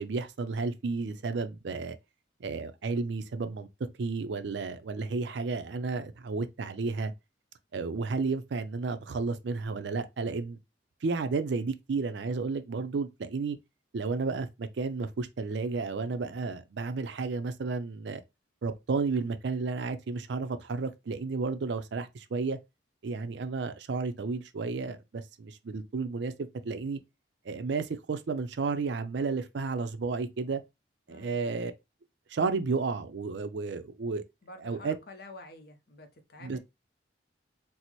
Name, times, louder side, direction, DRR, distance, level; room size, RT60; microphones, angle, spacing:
voice 1, 0.0-2.0 2.4-3.7 4.0-7.1 7.7-10.6 11.0-13.6 13.9-18.2 18.6-22.6 23.0-27.0 27.5-30.6 31.1-31.7 32.3-34.2 34.6-34.9 36.4-36.6, right 4 dB, 65° right, 0.4 m, -32 dB
voice 2, 31.1-31.4 34.4-36.6, left 2 dB, 55° left, 0.7 m, -49 dB
4.1 x 2.0 x 2.9 m
head